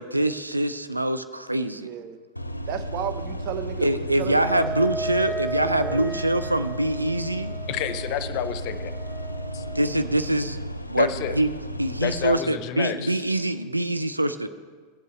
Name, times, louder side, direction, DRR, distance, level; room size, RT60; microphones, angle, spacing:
voice 1, 0.0-1.9 3.8-7.5 9.7-10.6 10.9-11.5 11.8-14.5, right 1 dB, 85° right, 10 dB, 0.5 m, -24 dB
voice 2, 1.8-2.2 2.7-4.7 5.6-6.0, right 9 dB, 40° right, 10 dB, 0.9 m, -33 dB
sound 1, 2.4-12.4, equal, 85° left, 0.5 m, -34 dB
Wind instrument woodwind instrument, 4.3-10.0, right 3 dB, 5° left, 1.1 m, -35 dB
voice 3, 7.7-8.9 9.5-9.6 11.0-11.4 12.0-13.2, left 11 dB, 45° left, 12 dB, 0.7 m, -29 dB
17.5 x 8.0 x 3.2 m, 1.5 s
figure-of-eight pair, 90°, 0 cm